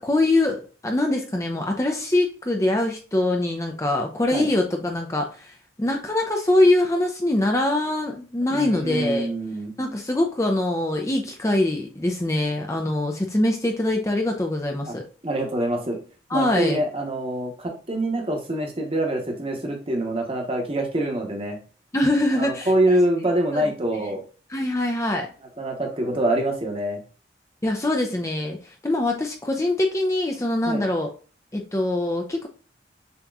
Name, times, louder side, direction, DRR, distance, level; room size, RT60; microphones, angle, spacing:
voice 1, 0.0-9.3 9.8-15.0 16.3-16.8 21.9-22.7 23.5-23.6 24.0-24.1 24.5-25.3 27.6-31.1 31.5-32.5, left 1 dB, 15° left, 2 dB, 0.5 m, -23 dB
voice 2, 8.5-9.7 14.8-14.9 15.2-16.0 16.3-21.6 22.3-24.2 25.6-27.0 30.7-30.8, right 1 dB, 30° right, 2 dB, 1.0 m, -25 dB
7.0 x 3.0 x 2.4 m, 0.37 s
head